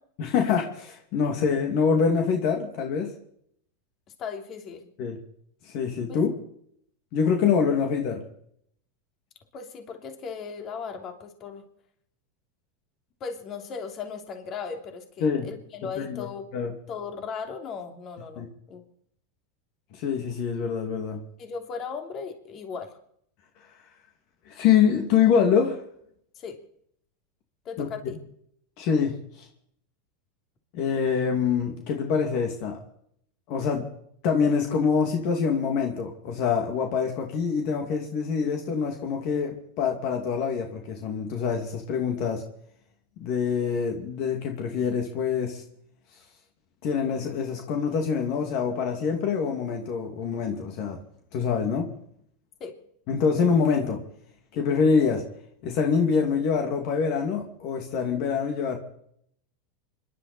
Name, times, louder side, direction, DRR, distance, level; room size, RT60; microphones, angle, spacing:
voice 1, 0.2-3.1 5.0-5.2 5.6-6.3 7.1-8.2 15.2-15.5 16.0-16.3 16.5-16.7 18.4-18.5 19.9-21.2 24.5-25.8 27.8-27.9 28.8-29.5 30.7-32.8 33.5-33.9 34.2-42.4 43.2-45.6 46.8-51.0 51.3-51.9 53.1-54.0 54.5-55.2 55.6-58.8, left 6 dB, 55° left, 3 dB, 2.5 m, -25 dB
voice 2, 4.2-4.9 6.1-6.2 9.5-11.6 13.2-16.5 16.9-18.8 21.4-23.0 26.3-26.6 27.6-28.2 52.6-52.7, left 5 dB, 40° left, 4 dB, 3.0 m, -37 dB
26.0 x 11.5 x 4.4 m, 0.68 s
hypercardioid pair, 110°, 0 cm